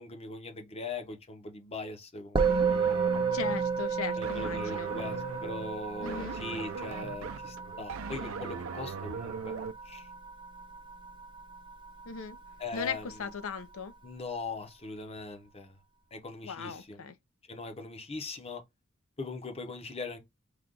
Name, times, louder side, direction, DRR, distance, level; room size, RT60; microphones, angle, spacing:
voice 1, 0.0-3.2 4.1-9.5 9.8-10.1 12.6-13.1 14.0-15.8 16.1-17.0 17.5-18.6 19.2-20.2, left 3 dB, 30° left, 0.7 m, -40 dB
Musical instrument, 2.4-11.9, right 5 dB, 25° right, 0.5 m, -32 dB
sound 1, 2.4-9.7, right 5 dB, 80° right, 0.5 m, -40 dB
voice 2, 3.3-4.9 6.0-6.4 12.1-12.4 12.7-13.9 16.4-17.1, left 5 dB, 80° left, 0.6 m, -37 dB
4.9 x 2.3 x 3.7 m
head